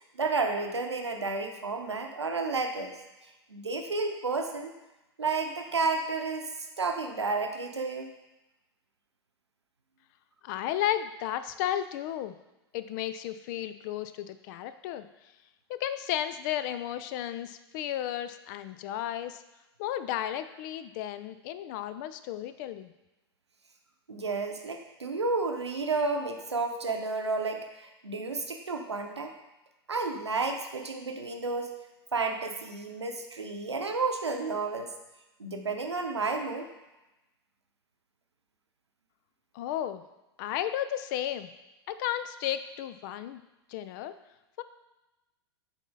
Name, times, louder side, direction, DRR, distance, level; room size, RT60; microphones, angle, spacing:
voice 1, 0.0-2.9 3.5-4.7 5.2-6.5 6.8-8.1 24.1-29.3 29.9-31.7 32.1-34.9 35.4-36.7, right 3 dB, 85° right, 4 dB, 0.8 m, -31 dB
voice 2, 10.4-12.3 12.7-15.1 15.7-19.4 19.8-22.9 39.5-40.0 40.4-41.5 41.9-43.4 43.7-44.2 44.6-44.7, left 11 dB, 45° left, 12 dB, 0.4 m, -33 dB
7.1 x 4.2 x 4.0 m, 1.0 s
figure-of-eight pair, 100°, 14 cm